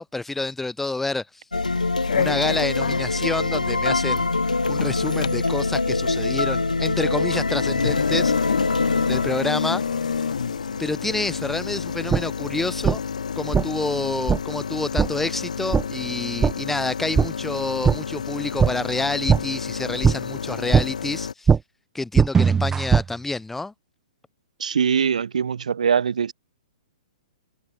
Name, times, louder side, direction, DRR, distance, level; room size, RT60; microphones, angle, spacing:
voice 1, 0.0-1.4 2.1-4.3 4.7-8.3 9.1-9.8 10.8-13.0 13.4-21.5 21.9-23.7, left 2 dB, 5° left, 2.5 m, -28 dB
sound 1, 1.5-11.6, left 3 dB, 85° left, 2.4 m, -25 dB
sound 2, 1.7-21.3, left 6 dB, 70° left, 1.2 m, -30 dB
sound 3, 12.1-12.2 12.8-13.0 13.5-13.7 14.3-14.4 15.0-15.1 15.7-15.8 16.4-16.5 17.2-17.3 17.8-18.0 18.6-18.7 19.3-19.4 20.0-20.2 20.7-20.8 21.5-21.6 22.2-23.0, right 6 dB, 10° right, 0.7 m, -17 dB
voice 2, 24.6-26.3, right 7 dB, 70° right, 0.4 m, -22 dB
figure-of-eight pair, 115°, 4 cm